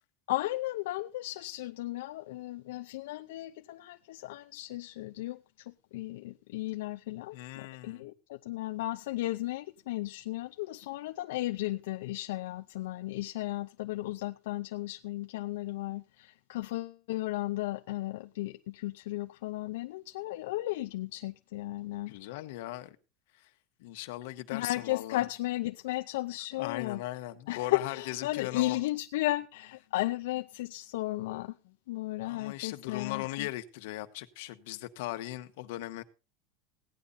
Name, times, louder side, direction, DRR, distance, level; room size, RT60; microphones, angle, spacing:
voice 1, 0.3-22.1 24.5-27.0 27.5-31.6 31.9-33.5, left 17 dB, 85° left, 0.6 m, -35 dB
voice 2, 7.3-8.1 22.1-23.0 23.4-23.5 23.8-25.2 26.5-28.8 31.6-31.7 32.2-36.0, left 16 dB, 70° left, 1.3 m, -39 dB
16.5 x 10.0 x 4.1 m
supercardioid pair, 170°, 0 cm